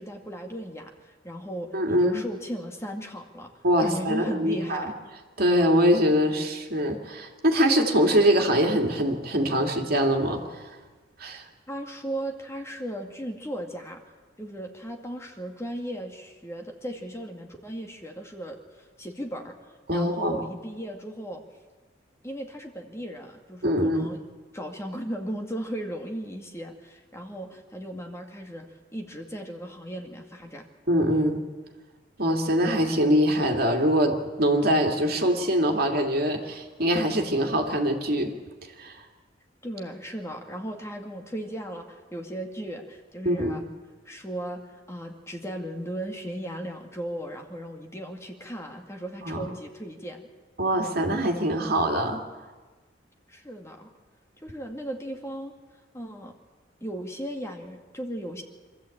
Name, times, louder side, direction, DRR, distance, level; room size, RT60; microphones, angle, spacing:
voice 1, 0.0-3.5 3.8-5.0 11.7-14.0 14.4-18.6 19.0-19.6 19.9-21.4 22.2-24.2 24.5-30.7 39.6-43.6 44.1-44.6 44.9-50.3 53.3-53.9 54.4-55.5 55.9-56.3 56.8-58.4, right 1 dB, 15° left, 2 dB, 2.0 m, -36 dB
voice 2, 1.7-2.2 3.6-4.9 5.4-10.7 11.2-11.4 19.9-20.4 23.6-24.1 30.9-31.4 32.2-38.3 38.8-39.0 43.2-43.6 49.2-49.5 50.6-52.2, equal, 55° right, 3 dB, 2.5 m, -23 dB
25.5 x 13.5 x 8.6 m, 1.4 s
head